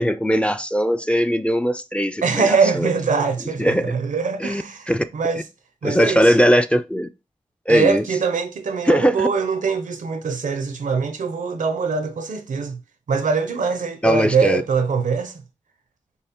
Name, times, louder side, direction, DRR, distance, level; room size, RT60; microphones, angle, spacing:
voice 1, 0.0-2.9 3.6-3.9 4.4-5.0 5.8-7.1 7.7-8.0 8.9-9.3 14.0-14.6, equal, 10° left, 0.4 m, -19 dB
voice 2, 2.2-5.4 5.8-6.3 7.7-12.8 13.1-15.4, right 5 dB, 85° right, 0.6 m, -23 dB
5.4 x 2.0 x 2.8 m
cardioid pair, 40°, 13 cm